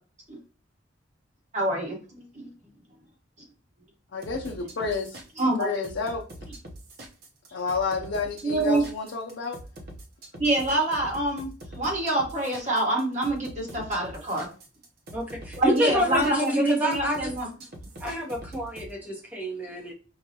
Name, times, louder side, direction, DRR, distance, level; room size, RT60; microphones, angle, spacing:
voice 1, 1.5-2.5 5.4-5.7 8.4-8.8 10.4-11.5 11.7-14.5 15.6-17.5, right 1 dB, 40° right, 0 dB, 1.2 m, -26 dB
voice 2, 4.1-5.2 5.6-6.2 7.5-9.6, left 4 dB, 80° left, 0 dB, 0.5 m, -30 dB
sound 1, 4.2-18.9, right 1 dB, 55° right, 0.7 m, -43 dB
voice 3, 15.1-17.3 18.0-19.9, equal, 10° right, 0 dB, 0.8 m, -28 dB
4.7 x 2.2 x 2.8 m, 0.36 s
head